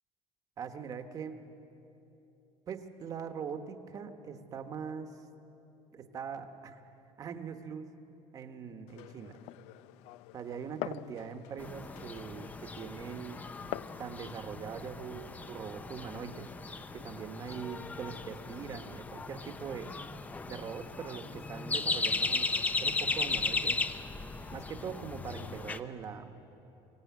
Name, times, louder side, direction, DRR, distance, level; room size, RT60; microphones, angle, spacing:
voice 1, 0.6-1.4 2.7-5.2 5.9-6.8 7.2-7.9 8.3-9.4 10.3-13.4 14.0-16.5 16.9-19.9 20.5-22.5 22.8-23.8 24.5-26.3, right 6 dB, 30° right, 8 dB, 1.2 m, -42 dB
Glass, 8.9-14.0, left 15 dB, 80° left, 0.5 m, -45 dB
sound 1, 11.6-25.8, left 3 dB, 15° left, 0.6 m, -36 dB
24.5 x 16.5 x 9.4 m, 3.0 s
cardioid pair, 165°, 11 cm